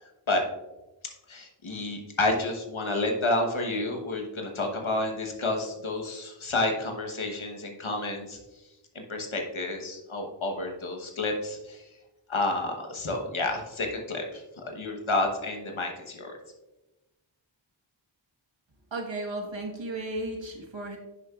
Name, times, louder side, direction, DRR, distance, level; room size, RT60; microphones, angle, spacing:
voice 1, 1.3-8.4 8.9-11.8 12.3-16.3, left 2 dB, 85° left, 2 dB, 1.2 m, -30 dB
voice 2, 18.9-21.0, right 2 dB, 70° right, 0 dB, 1.4 m, -34 dB
10.0 x 6.6 x 2.4 m, 1.0 s
wide cardioid pair, 45°, 47 cm